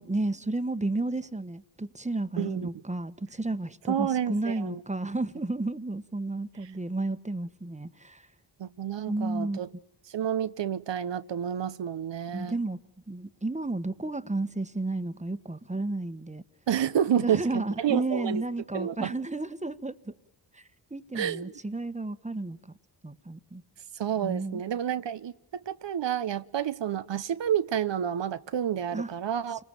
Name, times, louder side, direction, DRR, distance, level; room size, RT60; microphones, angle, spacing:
voice 1, 0.0-8.2 9.1-9.6 12.3-12.8 13.1-16.4 17.2-20.1 20.5-20.6 20.9-22.6 23.0-23.6 24.2-24.6 28.9-29.1, right 2 dB, 15° right, 1.4 m, -32 dB
voice 2, 2.4-2.7 3.9-4.8 8.6-9.7 10.1-12.6 16.7-18.4 18.7-19.1 21.1-21.5 23.9-25.3 25.7-29.6, right 9 dB, 80° right, 1.0 m, -29 dB
28.0 x 20.0 x 9.1 m
cardioid pair, 50°, 42 cm